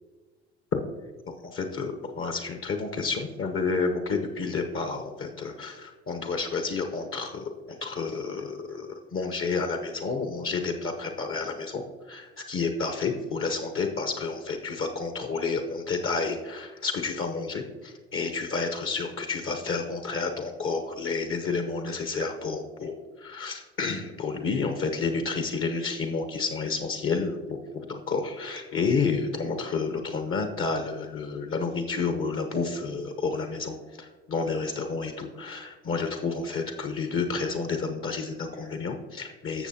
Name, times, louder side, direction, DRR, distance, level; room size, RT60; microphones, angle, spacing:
voice 1, 1.3-39.7, left 4 dB, 40° left, 6 dB, 1.0 m, -30 dB
14.5 x 6.8 x 2.8 m, 1.3 s
figure-of-eight pair, 55°, 34 cm